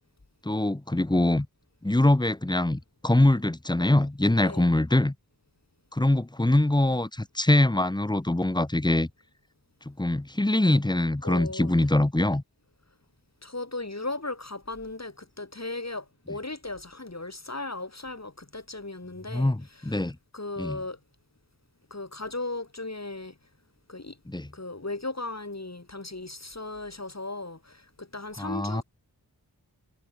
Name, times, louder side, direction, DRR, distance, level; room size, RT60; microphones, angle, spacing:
voice 1, 0.4-1.5 1.8-5.1 5.9-9.1 9.9-12.4 19.3-20.2 20.6-20.8 24.3-24.5 28.4-28.8, left 1 dB, 10° left, 1.0 m, -23 dB
voice 2, 11.2-12.0 13.4-20.0 20.3-21.0 21.9-23.4 23.9-24.2 24.5-28.8, left 2 dB, 45° left, 7.9 m, -37 dB
wide cardioid pair, 50°, 38 cm